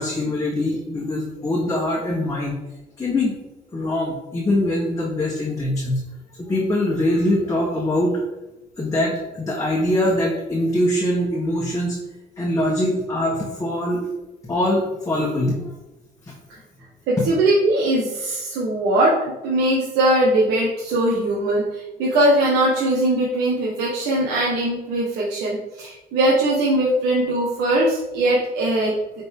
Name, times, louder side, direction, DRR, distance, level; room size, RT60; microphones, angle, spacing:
voice 1, 0.0-2.6 3.0-3.4 3.7-6.0 6.4-8.2 8.8-12.0 12.4-14.1 14.4-15.6 16.3-16.4, left 1 dB, 20° left, -3 dB, 1.3 m, -23 dB
voice 2, 17.1-29.2, right 1 dB, 85° right, -4 dB, 1.4 m, -20 dB
9.0 x 4.3 x 3.7 m, 1.0 s
cardioid pair, 110°, 17 cm